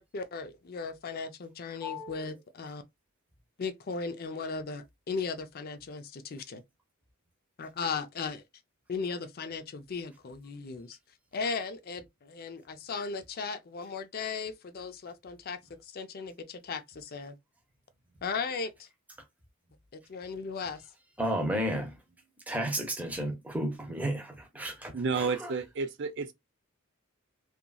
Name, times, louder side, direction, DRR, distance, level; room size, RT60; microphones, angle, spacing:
voice 1, 0.0-2.8 3.6-6.6 7.6-8.4 8.9-11.0 11.3-17.4 18.2-18.9 19.9-20.8, left 4 dB, 45° left, 0.4 m, -37 dB
voice 2, 1.8-2.2 21.2-22.0 22.5-25.5, equal, 5° right, 0.7 m, -33 dB
voice 3, 24.9-26.3, right 4 dB, 55° right, 0.5 m, -31 dB
2.9 x 2.5 x 2.3 m
head